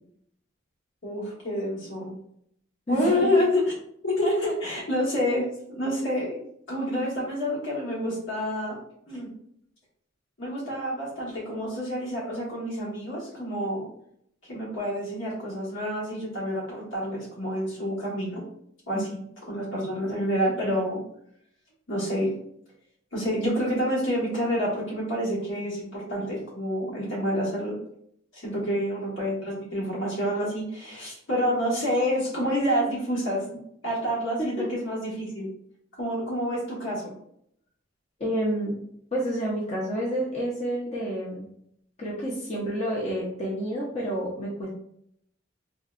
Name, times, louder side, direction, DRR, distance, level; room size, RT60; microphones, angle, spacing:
voice 1, 1.0-2.2 2.9-3.7 4.0-6.4 6.7-8.8 9.1-9.3 10.4-13.8 14.5-18.4 18.9-21.0 21.9-22.3 23.1-27.7 28.3-33.4 33.8-35.5 36.0-37.1, equal, 80° left, -5 dB, 1.3 m, -28 dB
voice 2, 2.9-3.3 18.9-19.0 28.6-28.8 34.4-34.7 38.2-38.7 39.1-41.4 42.0-44.7, equal, 35° left, -5 dB, 0.6 m, -29 dB
3.7 x 2.2 x 2.4 m, 0.70 s
head